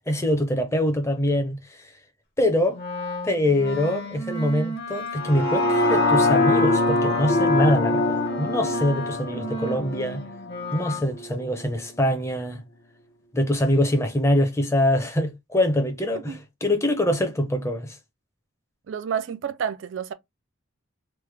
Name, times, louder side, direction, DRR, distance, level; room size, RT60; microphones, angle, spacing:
voice 1, 0.1-1.6 2.4-2.8 3.2-10.2 10.7-12.6 13.3-18.0, left 1 dB, 15° left, 0.5 m, -24 dB
Wind instrument woodwind instrument, 2.7-11.0, left 2 dB, 50° left, 0.8 m, -29 dB
sound 1, 5.2-11.3 11.7-11.8, left 1 dB, 80° left, 0.9 m, -24 dB
voice 2, 18.9-20.1, right 7 dB, 60° right, 0.3 m, -29 dB
3.2 x 2.1 x 3.2 m
head